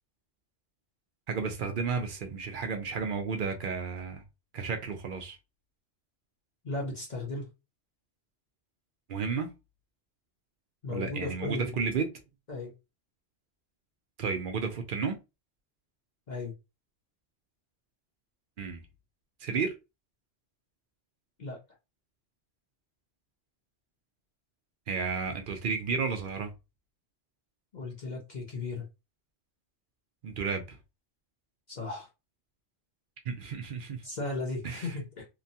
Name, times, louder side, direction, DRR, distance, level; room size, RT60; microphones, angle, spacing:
voice 1, 1.3-4.2 4.5-5.4 9.1-9.5 10.9-12.1 14.2-15.2 18.6-18.8 19.4-19.7 24.9-26.5 30.2-30.8 33.3-34.0 34.6-34.9, right 5 dB, 60° right, 0.6 m, -32 dB
voice 2, 6.6-7.5 10.8-11.7 12.5-12.7 16.3-16.5 21.4-21.6 27.7-28.8 31.7-32.1 34.0-35.3, left 3 dB, 45° left, 0.8 m, -36 dB
2.9 x 2.2 x 2.7 m
omnidirectional pair, 1.2 m